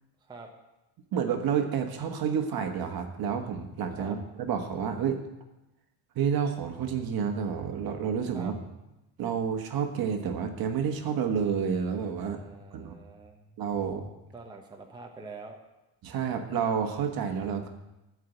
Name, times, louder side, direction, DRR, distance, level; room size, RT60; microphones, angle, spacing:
voice 1, 1.1-5.2 6.1-8.6 9.2-12.4 12.7-12.9 13.6-14.1 16.0-17.7, right 7 dB, 50° right, 5 dB, 1.4 m, -29 dB
voice 2, 12.2-13.4 14.3-15.6, right 3 dB, 10° right, 1 dB, 0.9 m, -45 dB
14.0 x 4.8 x 8.0 m, 0.98 s
cardioid pair, 150°, 45 cm